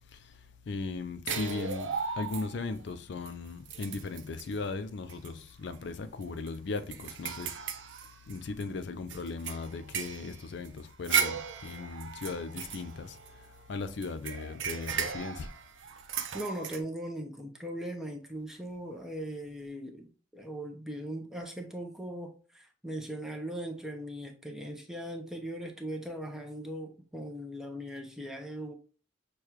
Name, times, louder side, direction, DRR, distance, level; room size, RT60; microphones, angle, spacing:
voice 1, 0.7-7.8 8.3-15.5, left 3 dB, 65° left, 0.4 m, -38 dB
sound 1, 1.3-2.8 3.3-3.4 3.7-4.5 5.1-5.3 5.7-5.8 6.2-8.6 9.1-13.6 14.0-16.8, right 7 dB, 80° right, 0.5 m, -36 dB
voice 2, 16.3-28.7, right 1 dB, ahead, 0.6 m, -39 dB
6.4 x 2.3 x 2.9 m
head